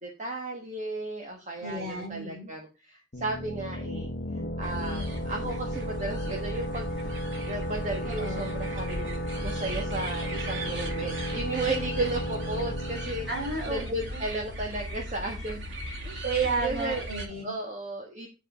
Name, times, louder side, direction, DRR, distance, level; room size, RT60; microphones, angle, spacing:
voice 1, 0.0-4.1 4.6-13.3 13.7-15.6 16.0-16.2 16.6-17.1 17.4-18.3, right 2 dB, 40° right, 1 dB, 1.5 m, -34 dB
voice 2, 1.6-2.5 8.0-8.6 13.3-13.9 14.1-14.2 16.2-17.5, right 4 dB, 55° right, -1 dB, 4.2 m, -32 dB
sound 1, 3.1-14.6, equal, 55° left, 1.1 m, -35 dB
sound 2, 4.6-17.3, equal, 85° right, 2.7 m, -37 dB
9.8 x 4.8 x 5.0 m, 0.29 s
head